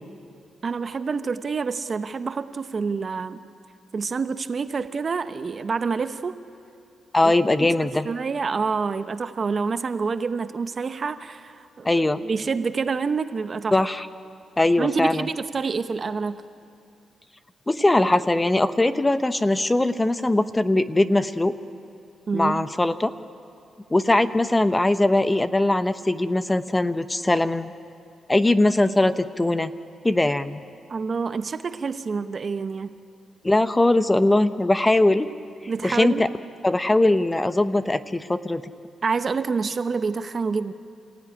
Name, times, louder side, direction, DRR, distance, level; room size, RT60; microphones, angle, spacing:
voice 1, 0.6-3.4 3.9-6.3 7.2-7.3 7.6-7.7 8.0-11.9 12.2-13.8 14.8-16.4 22.3-22.7 30.9-33.0 35.7-36.2 39.0-40.7, right 5 dB, 45° right, 10 dB, 0.9 m, -27 dB
voice 2, 7.1-8.1 11.8-12.2 13.7-14.1 14.6-15.3 17.7-21.5 22.3-23.1 23.9-27.7 28.3-29.7 30.0-30.6 33.4-35.3 35.8-36.3 36.6-38.6, left 2 dB, 15° left, 11 dB, 0.8 m, -21 dB
28.5 x 15.5 x 9.8 m, 2.5 s
cardioid pair, 90°, 0 cm